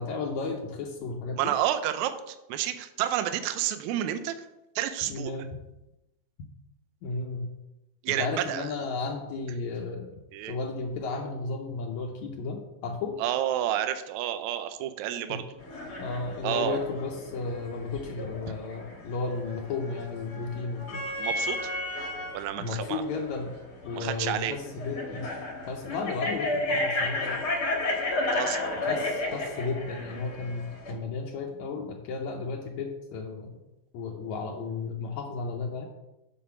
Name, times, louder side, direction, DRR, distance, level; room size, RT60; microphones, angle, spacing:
voice 1, 0.0-1.5 5.1-5.5 7.0-7.5 8.1-10.1 10.5-13.2 15.3-15.4 16.0-21.0 22.6-23.5 23.8-25.3 25.7-27.5 28.8-33.5 33.9-35.9, left 4 dB, 75° left, 2 dB, 2.0 m, -33 dB
voice 2, 1.3-4.4 4.8-5.3 8.0-8.7 10.3-10.5 13.2-15.4 16.4-16.8 21.2-21.6 22.3-23.0 23.9-24.6 28.3-28.6, right 11 dB, 75° right, 10 dB, 1.8 m, -30 dB
sound 1, 15.6-30.9, left 2 dB, 45° left, 1.4 m, -33 dB
8.5 x 4.5 x 5.7 m, 0.95 s
omnidirectional pair, 3.6 m